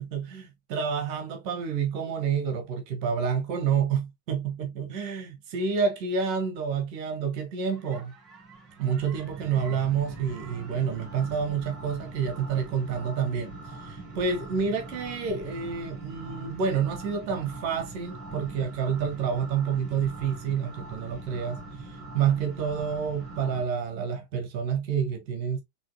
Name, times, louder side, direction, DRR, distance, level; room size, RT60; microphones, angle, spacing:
voice 1, 0.0-8.1 8.8-13.5 13.8-21.6 22.1-25.6, right 6 dB, 45° right, 1.5 m, -28 dB
sound 1, 7.7-23.6, right 3 dB, 25° right, 3.1 m, -42 dB
6.1 x 3.3 x 2.4 m
figure-of-eight pair, 90°, 0 cm